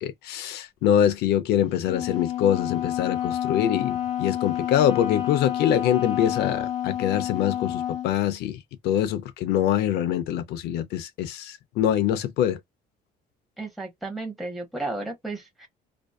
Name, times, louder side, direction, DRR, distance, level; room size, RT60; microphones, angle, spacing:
voice 1, 0.0-12.6, left 10 dB, 75° left, 0.4 m, -24 dB
Wind instrument woodwind instrument, 1.9-8.1, left 11 dB, 40° left, 0.9 m, -29 dB
voice 2, 13.6-15.7, right 2 dB, ahead, 0.7 m, -33 dB
2.5 x 2.2 x 2.2 m
cardioid pair, 110°, 17 cm